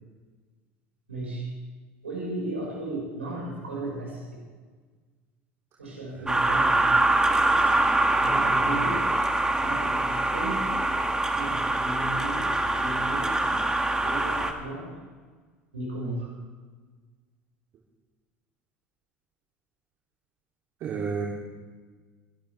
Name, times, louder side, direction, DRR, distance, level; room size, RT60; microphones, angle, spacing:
voice 1, 1.1-1.5 2.0-4.4 5.8-7.0 8.2-9.1 9.6-10.8 11.3-12.4 12.7-13.7 14.0-15.0 15.7-16.3, right 2 dB, 90° right, -2 dB, 5.5 m, -35 dB
voice 2, 6.1-6.6 7.4-7.5 20.8-21.3, right 6 dB, 50° right, -3 dB, 3.0 m, -33 dB
sound 1, 6.3-14.5, right 2 dB, 10° right, 1.9 m, -24 dB
24.5 x 12.0 x 3.4 m, 1.4 s
hypercardioid pair, 75°, 6 cm